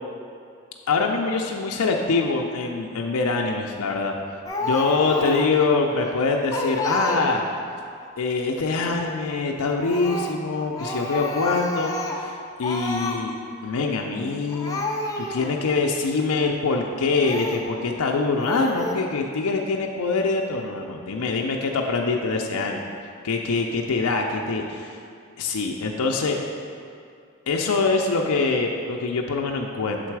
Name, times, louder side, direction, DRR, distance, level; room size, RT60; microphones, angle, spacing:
voice 1, 0.9-4.2 4.6-7.5 8.2-13.3 13.6-14.8 15.2-22.8 23.2-24.9 25.4-26.4 27.5-30.0, left 4 dB, 85° left, 1 dB, 0.5 m, -24 dB
Speech, 4.5-5.6 6.0-6.1 6.5-7.6 9.8-10.4 10.8-12.3 12.6-13.2 14.1-14.2 14.5-15.6 16.1-16.3 17.2-17.7 18.4-18.9, left 1 dB, 15° left, 0.4 m, -29 dB
7.4 x 3.9 x 4.6 m, 2.4 s
head